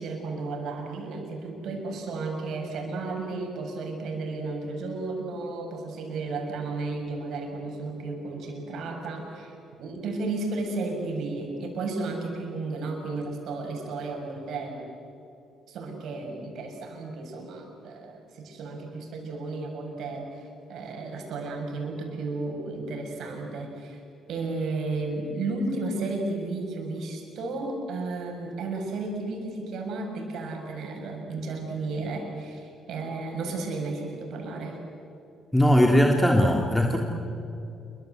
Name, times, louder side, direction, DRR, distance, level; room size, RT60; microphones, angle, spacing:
voice 1, 0.0-14.8 15.7-24.0 24.3-34.8, right 3 dB, 70° right, 2 dB, 6.9 m, -33 dB
voice 2, 35.5-37.0, equal, 5° left, 1 dB, 3.2 m, -19 dB
28.0 x 24.5 x 8.1 m, 2.8 s
hypercardioid pair, 50°, 0 cm